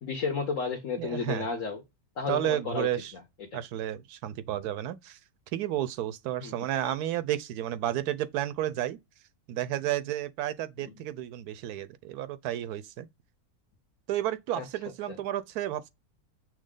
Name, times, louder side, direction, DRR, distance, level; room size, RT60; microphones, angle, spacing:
voice 1, 0.0-1.8 2.2-2.9 3.4-3.6 6.4-6.5 14.5-14.6 15.1-15.2, left 5 dB, 55° left, 1.3 m, -32 dB
voice 2, 1.0-1.5 2.3-3.1 3.5-5.2 5.5-9.0 9.5-13.1 14.1-15.9, right 12 dB, 80° right, 1.1 m, -32 dB
6.2 x 2.1 x 3.6 m
omnidirectional pair, 1.6 m